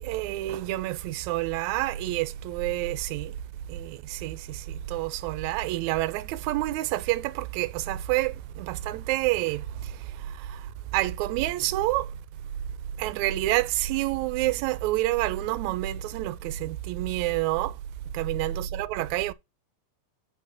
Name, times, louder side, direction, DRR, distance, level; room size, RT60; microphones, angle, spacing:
voice 1, 0.0-3.3 3.7-9.9 10.4-10.6 10.9-12.1 13.0-17.7 18.1-19.3, right 16 dB, 80° right, 1.9 m, -28 dB
5.4 x 4.7 x 6.3 m
omnidirectional pair, 3.3 m